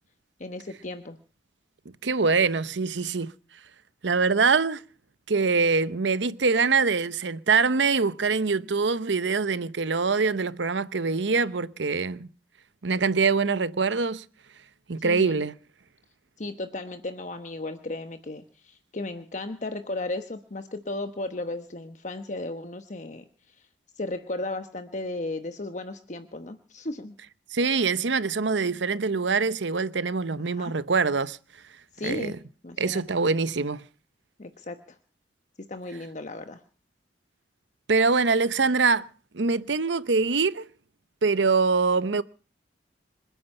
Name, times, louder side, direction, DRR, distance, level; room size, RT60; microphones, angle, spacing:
voice 1, 0.4-1.2 15.0-15.4 16.4-23.2 23.6-23.7 24.0-27.1 30.5-30.7 31.9-32.4 32.6-33.0 34.4-35.0 35.7-36.6, left 2 dB, 40° left, 1.1 m, -35 dB
voice 2, 2.0-3.3 4.0-4.8 5.3-12.3 12.8-14.2 14.9-15.5 27.5-31.4 32.0-32.4 32.8-33.8 37.9-39.1 39.3-40.7 41.2-42.2, right 4 dB, 80° right, 0.8 m, -24 dB
27.0 x 9.4 x 5.5 m
head